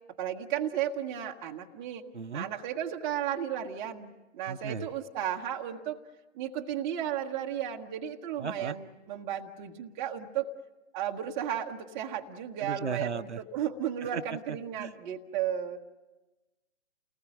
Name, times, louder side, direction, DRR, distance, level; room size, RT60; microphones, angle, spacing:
voice 1, 0.2-2.0 2.3-6.0 6.3-10.5 10.9-15.8, right 10 dB, 15° right, 2 dB, 0.9 m, -34 dB
voice 2, 2.1-2.5 4.5-4.9 8.4-8.7 12.6-13.4 14.0-14.2 14.5-14.9, right 5 dB, 70° right, 10 dB, 0.9 m, -36 dB
29.5 x 19.5 x 10.0 m, 1.1 s
figure-of-eight pair, 135°, 36 cm